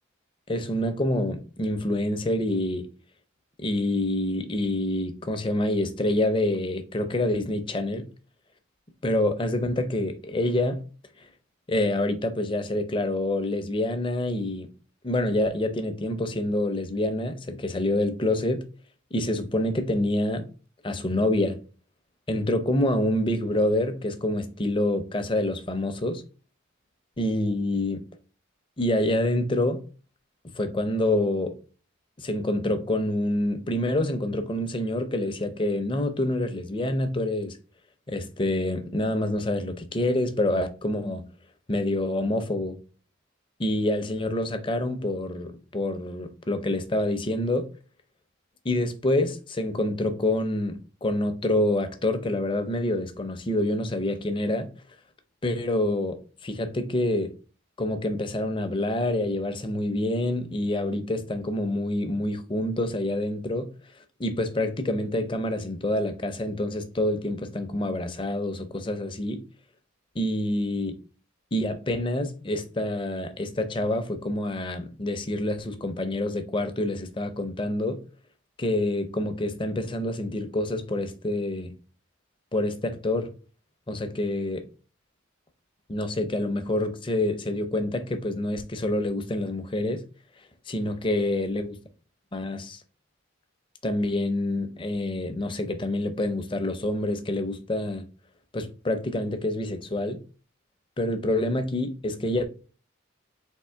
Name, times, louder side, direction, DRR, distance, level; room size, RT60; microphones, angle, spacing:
voice 1, 0.5-2.9 3.6-8.1 9.0-10.8 11.2-11.3 11.7-14.7 15.0-18.7 19.1-20.5 20.8-21.6 22.3-26.2 27.2-28.1 28.8-29.8 30.5-31.6 32.2-37.6 38.1-41.3 41.7-42.8 43.6-47.7 48.6-54.7 55.4-57.4 57.8-63.7 64.2-69.4 70.1-71.0 71.5-78.0 78.6-81.7 82.5-83.3 83.9-84.7 85.9-90.0 90.7-91.8 92.3-92.8 93.8-98.1 98.5-100.2 101.0-102.5, left 1 dB, 25° left, 0.5 m, -27 dB
3.6 x 2.8 x 4.4 m
head